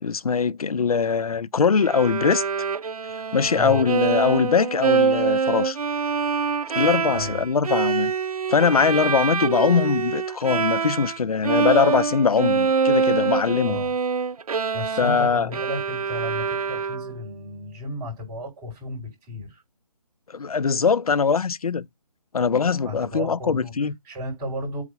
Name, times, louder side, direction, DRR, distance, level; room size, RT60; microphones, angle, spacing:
voice 1, 0.0-2.4 3.3-5.8 6.7-8.1 8.5-13.8 15.0-15.5 20.3-21.9 22.3-23.9, left 5 dB, 70° left, 0.6 m, -21 dB
Bowed string instrument, 1.8-11.2 11.4-17.3, right 5 dB, 70° right, 0.5 m, -25 dB
voice 2, 3.5-3.8 7.1-7.4 13.7-13.9 14.5-19.6 22.8-23.7 24.0-24.8, equal, 15° right, 4.7 m, -33 dB
8.3 x 3.5 x 5.3 m
figure-of-eight pair, 150°, 20 cm